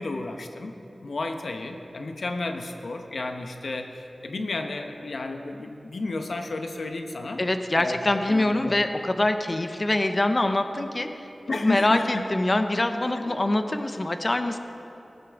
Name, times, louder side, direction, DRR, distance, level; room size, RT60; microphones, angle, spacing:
voice 1, 0.0-7.4 7.7-8.0 8.3-8.8 11.5-12.2 13.2-13.4, left 2 dB, 70° left, 5 dB, 0.9 m, -32 dB
voice 2, 7.4-11.3 11.6-14.6, left 1 dB, 30° left, 7 dB, 0.6 m, -24 dB
19.0 x 9.1 x 3.6 m, 2.9 s
wide cardioid pair, 100°, 0 cm